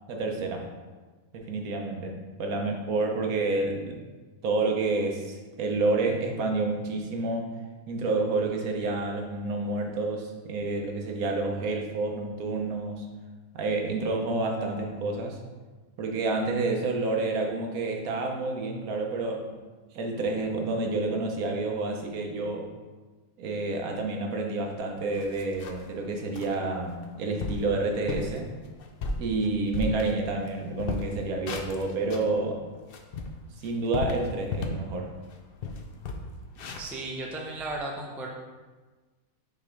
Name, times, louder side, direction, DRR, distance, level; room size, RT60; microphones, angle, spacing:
voice 1, 0.1-0.7 1.3-2.1 2.4-4.0 4.4-7.5 7.9-13.1 13.5-15.4 16.0-19.6 19.9-22.7 23.4-28.5 29.2-32.6 33.6-35.1, right 3 dB, 80° right, 2 dB, 1.3 m, -29 dB
sound 1, 24.7-24.8 25.1-25.9 26.3-26.5 27.0-27.1 27.4-27.7 28.1-28.4 28.8-30.5 30.8-32.3 32.7-34.9 35.2-35.4 35.6-37.8, left 3 dB, 60° left, 0.6 m, -34 dB
voice 2, 36.8-38.3, right 2 dB, ahead, -1 dB, 0.3 m, -35 dB
5.9 x 3.3 x 5.1 m, 1.3 s
omnidirectional pair, 1.5 m